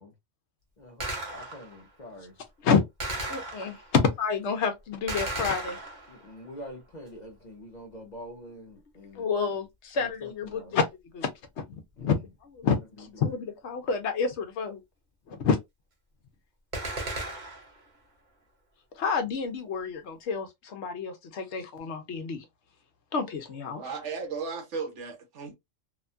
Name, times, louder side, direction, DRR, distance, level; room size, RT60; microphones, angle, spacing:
Gunshot gunfire, 1.0-1.8 3.0-4.0 5.1-6.3 16.7-17.8, right 2 dB, 40° right, 0.9 m, -35 dB
voice 1, 1.3-2.3 6.1-9.5 9.9-10.8 12.0-12.1 13.2-13.3, equal, 45° left, 0.6 m, -45 dB
voice 2, 3.3-5.8 9.1-10.8 11.1-11.3 12.0-14.8 15.3-15.6 18.9-22.4 23.1-23.8, left 5 dB, 65° left, 0.9 m, -28 dB
voice 3, 23.7-25.5, right 5 dB, 70° right, 1.1 m, -35 dB
2.8 x 2.2 x 2.5 m
omnidirectional pair, 1.3 m